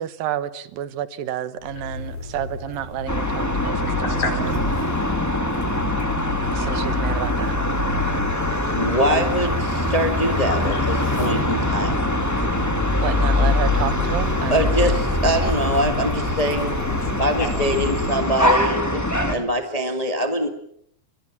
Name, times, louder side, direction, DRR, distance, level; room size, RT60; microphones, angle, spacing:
voice 1, 0.0-4.6 6.5-7.8 13.0-14.9, right 11 dB, 75° right, 14 dB, 2.9 m, -30 dB
sound 1, 1.6-18.1, left 3 dB, 85° left, 6.3 m, -30 dB
sound 2, 3.1-19.4, left 1 dB, 5° left, 1.4 m, -23 dB
voice 2, 3.9-4.5 4.8-6.7 9.1-9.2 10.5-10.6 17.0-17.1 17.4-17.5, left 4 dB, 65° left, 6 dB, 5.9 m, -33 dB
voice 3, 8.7-12.0 12.4-12.5 14.5-16.7 17.2-20.5, equal, 35° left, 6 dB, 0.6 m, -24 dB
29.0 x 22.5 x 7.3 m, 0.70 s
omnidirectional pair, 4.2 m